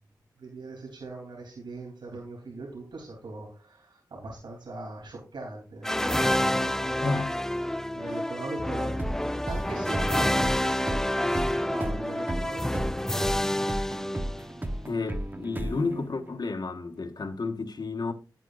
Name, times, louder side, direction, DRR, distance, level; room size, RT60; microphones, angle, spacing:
voice 1, 0.4-7.1 7.9-9.0 9.4-13.7, right 2 dB, 85° right, 3.4 m, -41 dB
sound 1, 5.8-14.7, left 1 dB, 5° left, 0.3 m, -28 dB
voice 2, 7.0-7.3 8.0-8.1 14.8-18.1, left 3 dB, 65° left, 1.4 m, -31 dB
sound 2, 9.0-16.6, right 1 dB, 25° right, 1.1 m, -35 dB
11.5 x 9.1 x 2.6 m
cardioid pair, 50°, 8 cm